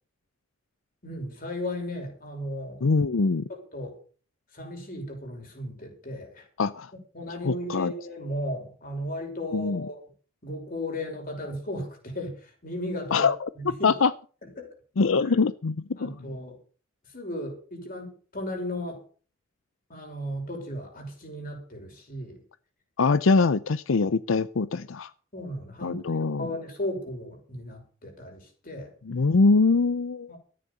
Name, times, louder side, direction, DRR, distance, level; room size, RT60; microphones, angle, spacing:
voice 1, 1.0-2.8 3.5-4.0 4.5-6.5 7.1-10.0 10.4-13.3 13.6-13.9 14.4-14.7 15.2-15.3 16.0-16.6 17.1-19.0 19.9-22.4 25.3-26.0 26.4-28.9 30.3-30.4, left 1 dB, 45° left, 5.8 m, -35 dB
voice 2, 2.8-3.4 6.6-6.9 7.4-7.9 9.5-9.8 13.1-13.5 13.8-14.1 15.0-16.1 23.0-25.1 25.8-26.5 29.1-30.3, left 4 dB, 85° left, 0.6 m, -23 dB
14.0 x 9.8 x 6.8 m
head